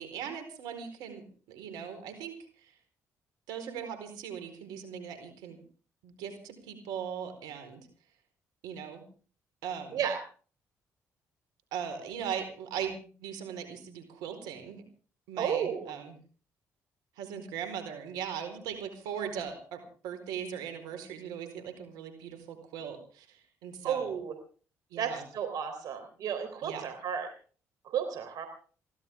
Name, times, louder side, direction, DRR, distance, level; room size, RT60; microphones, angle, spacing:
voice 1, 0.0-2.7 3.5-5.6 6.0-7.9 8.6-9.0 9.6-10.0 11.7-14.8 15.3-16.2 17.2-24.2 24.9-25.3 26.6-26.8, right 8 dB, 85° right, 8 dB, 4.4 m, -39 dB
voice 2, 15.4-15.9 23.8-24.3 25.0-27.3 27.8-28.5, right 8 dB, 70° right, 6 dB, 3.7 m, -32 dB
23.0 x 17.5 x 3.6 m, 0.40 s
supercardioid pair, 60°, 7 cm